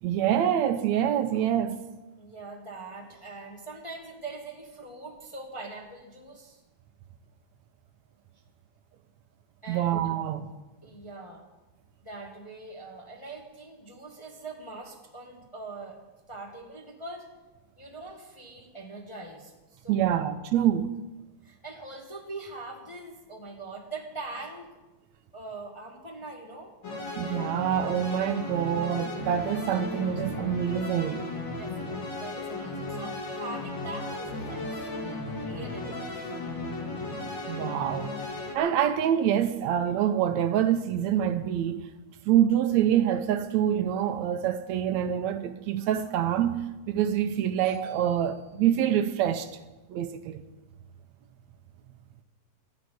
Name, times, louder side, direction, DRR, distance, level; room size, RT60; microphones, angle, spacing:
voice 1, 0.0-1.8 9.7-10.5 19.9-20.9 27.2-31.3 37.5-38.1 38.5-41.8 42.3-46.6 46.9-49.5 49.9-50.4, right 10 dB, 75° right, 2.0 m, -26 dB
voice 2, 2.2-6.6 9.6-10.4 10.8-11.5 12.0-16.0 16.3-17.3 17.8-20.2 21.4-24.7 25.3-26.7 31.5-36.3, right 3 dB, 15° left, 1.3 m, -42 dB
sound 1, 26.8-38.5, left 2 dB, 40° left, 2.6 m, -35 dB
13.5 x 10.5 x 9.4 m
omnidirectional pair, 3.4 m